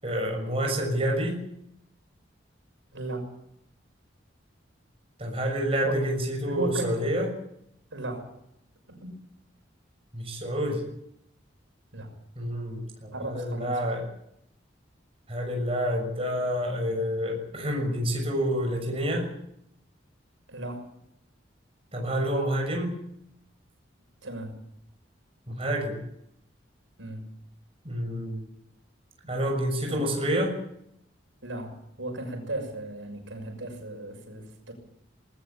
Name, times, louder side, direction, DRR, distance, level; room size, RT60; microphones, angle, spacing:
voice 1, 0.0-1.4 5.2-7.3 10.1-10.9 12.4-14.1 15.3-19.3 21.9-22.9 25.5-26.0 27.8-28.4 29.3-30.5, equal, 30° right, 2 dB, 6.4 m, -28 dB
voice 2, 2.9-3.3 5.8-6.0 6.5-7.0 7.9-8.3 8.9-9.2 11.9-12.1 13.1-13.8 20.5-20.9 24.2-24.5 27.0-27.2 29.9-30.1 31.4-34.7, right 2 dB, 85° right, 4 dB, 6.3 m, -36 dB
19.5 x 19.5 x 8.7 m, 0.76 s
head